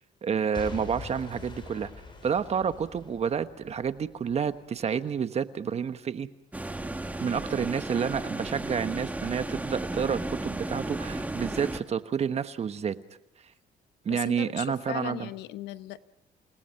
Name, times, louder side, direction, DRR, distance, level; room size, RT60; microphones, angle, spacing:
voice 1, 0.2-1.9 2.2-6.3 7.2-12.9 14.0-15.3, right 7 dB, 40° right, 11 dB, 1.3 m, -29 dB
Boom / Shatter / Crushing, 0.5-4.5 5.1-5.2, left 3 dB, 30° left, 6.4 m, -44 dB
sound 1, 6.5-11.8, right 2 dB, 10° right, 1.5 m, -34 dB
voice 2, 14.1-16.0, left 14 dB, 85° left, 13 dB, 1.0 m, -38 dB
29.5 x 18.5 x 5.8 m, 0.82 s
cardioid pair, 110°, 17 cm